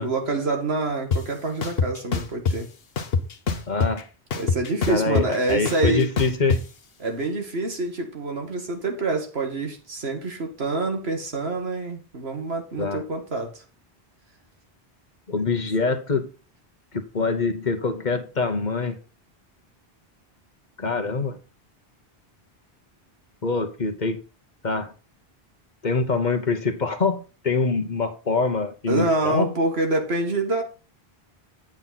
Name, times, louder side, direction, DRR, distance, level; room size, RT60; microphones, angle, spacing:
voice 1, 0.0-2.7 4.3-6.1 7.0-13.6 15.5-15.6 28.9-30.6, right 2 dB, 80° right, 2.1 m, -26 dB
sound 1, 1.1-1.2 1.6-2.6 3.0-4.0 4.3-6.6, left 5 dB, 70° left, 1.2 m, -24 dB
voice 2, 3.7-4.0 4.9-6.6 12.8-13.0 15.3-16.3 16.9-19.0 20.8-21.4 23.4-24.2 24.6-24.9 25.8-29.5, left 4 dB, 45° left, 1.2 m, -24 dB
8.8 x 7.6 x 4.1 m
omnidirectional pair, 1.0 m